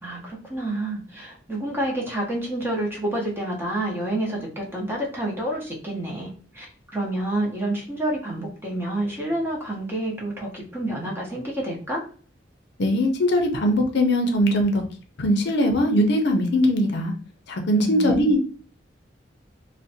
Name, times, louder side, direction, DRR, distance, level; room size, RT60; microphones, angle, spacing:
voice 1, 0.0-6.7 6.9-12.0 17.7-18.4, right 1 dB, 15° right, -2 dB, 0.6 m, -28 dB
voice 2, 12.8-14.8 15.2-17.1 17.5-18.4, equal, 65° left, 4 dB, 0.5 m, -20 dB
2.5 x 2.1 x 2.6 m, 0.40 s
head